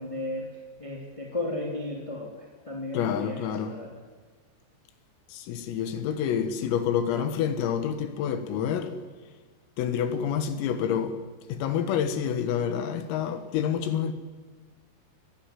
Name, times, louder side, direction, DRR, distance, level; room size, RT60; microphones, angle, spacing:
voice 1, 0.0-4.0, left 2 dB, 10° left, 2.2 m, -35 dB
voice 2, 2.9-3.8 5.3-9.0 9.8-11.2 11.5-14.1, left 8 dB, 85° left, 4.3 m, -28 dB
28.5 x 21.0 x 7.7 m
omnidirectional pair, 5.9 m